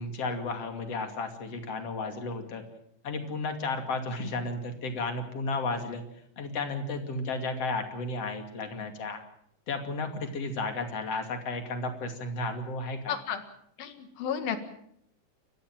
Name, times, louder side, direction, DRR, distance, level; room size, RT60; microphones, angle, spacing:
voice 1, 0.0-2.6 3.0-6.0 6.4-9.2 9.7-13.2, left 3 dB, 45° left, 5 dB, 3.3 m, -33 dB
voice 2, 13.1-13.4 13.8-14.6, left 8 dB, 75° left, 8 dB, 3.6 m, -32 dB
30.0 x 14.5 x 7.6 m, 0.72 s
omnidirectional pair, 4.4 m